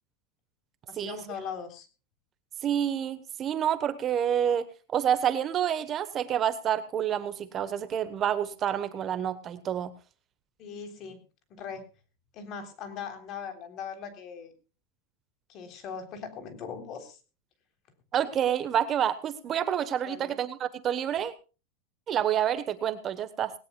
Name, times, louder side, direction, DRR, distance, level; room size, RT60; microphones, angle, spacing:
voice 1, 0.9-1.9 10.6-11.2 11.5-11.9 12.3-14.5 15.5-17.2 20.1-20.4, left 6 dB, 40° left, 8 dB, 3.5 m, -40 dB
voice 2, 2.6-9.9 18.1-21.3 22.1-23.5, right 9 dB, 30° right, 12 dB, 1.1 m, -28 dB
19.5 x 18.5 x 2.3 m, 0.33 s
supercardioid pair, 150°, 0 cm